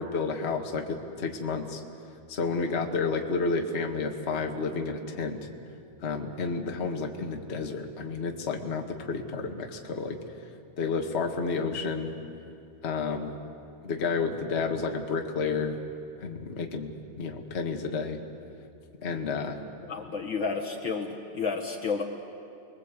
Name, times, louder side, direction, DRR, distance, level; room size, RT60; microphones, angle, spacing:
voice 1, 0.0-1.8 2.3-5.5 6.0-10.2 10.8-12.1 12.8-13.3 13.8-15.7 16.2-18.2 19.0-19.6, left 4 dB, 30° left, 3 dB, 1.4 m, -31 dB
voice 2, 19.9-22.0, left 5 dB, 50° left, 2 dB, 1.7 m, -31 dB
29.5 x 22.0 x 8.3 m, 2.5 s
omnidirectional pair, 3.4 m